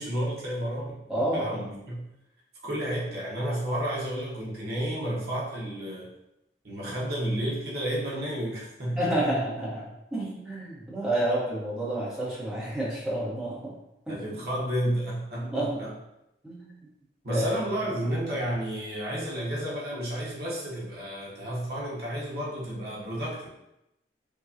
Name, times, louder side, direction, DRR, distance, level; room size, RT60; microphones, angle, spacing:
voice 1, 0.0-1.0 1.3-2.0 2.6-6.1 6.6-9.3 14.1-15.9 17.2-23.5, right 1 dB, 60° right, -5 dB, 1.1 m, -31 dB
voice 2, 1.1-1.5 8.9-13.7 14.1-14.2 15.4-15.8 16.4-16.8 17.3-17.4, right 1 dB, 5° right, -7 dB, 1.0 m, -29 dB
4.8 x 2.3 x 2.8 m, 0.86 s
head